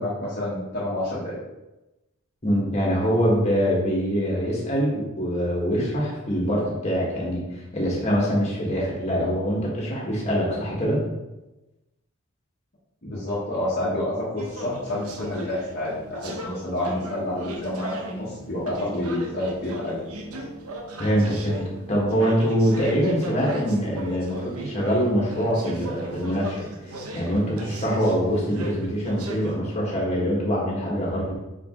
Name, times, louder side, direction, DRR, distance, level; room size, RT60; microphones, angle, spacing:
voice 1, 0.0-1.4 13.0-20.0, left 1 dB, 45° left, -8 dB, 1.3 m, -28 dB
voice 2, 2.4-11.0 21.0-21.6 21.9-26.6 27.1-31.3, equal, 30° left, -4 dB, 1.6 m, -24 dB
sound 1, 14.4-29.5, right 1 dB, 90° right, 1.0 m, -37 dB
5.2 x 4.8 x 3.8 m, 1.0 s
head